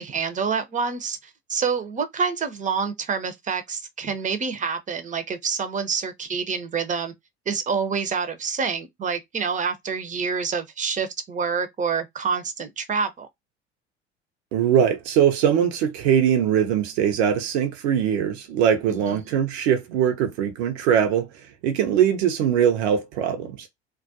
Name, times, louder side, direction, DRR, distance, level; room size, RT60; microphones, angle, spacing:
voice 1, 0.0-7.1 7.5-13.3 19.1-19.2, right 5 dB, 25° right, 0.6 m, -27 dB
voice 2, 14.5-21.3 21.6-23.7, right 9 dB, 70° right, 0.6 m, -21 dB
2.3 x 2.1 x 2.6 m
hypercardioid pair, 65°, 33 cm